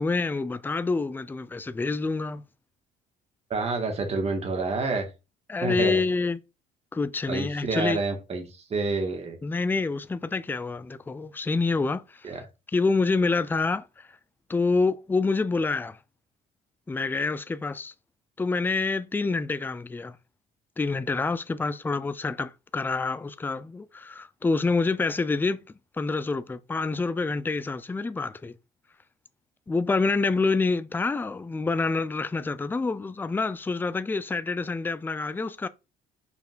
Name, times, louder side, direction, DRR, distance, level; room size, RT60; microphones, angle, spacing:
voice 1, 0.0-2.4 5.5-6.4 6.9-8.0 9.4-12.3 12.7-14.2 14.5-16.0 16.9-17.9 18.4-20.2 20.8-25.6 26.0-28.5 29.7-35.7, left 3 dB, 10° left, 0.4 m, -27 dB
voice 2, 3.5-5.1 5.6-6.0 7.3-9.4 12.2-12.4, right 3 dB, 40° right, 2.0 m, -28 dB
5.8 x 4.4 x 3.8 m
cardioid pair, 110°, 17 cm